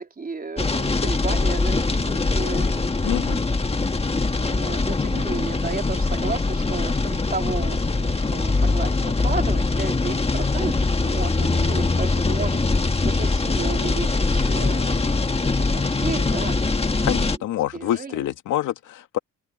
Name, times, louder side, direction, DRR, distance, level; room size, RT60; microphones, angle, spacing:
voice 1, 0.0-2.9 4.4-12.6 13.0-15.1 15.4-16.5 17.0-17.1 17.7-18.2, right 4 dB, 30° right, 3.5 m, -33 dB
sound 1, 0.6-17.4, left 3 dB, 20° left, 1.7 m, -22 dB
voice 2, 3.0-3.4 17.0-19.2, left 12 dB, 85° left, 2.5 m, -26 dB
cardioid pair, 90°, 30 cm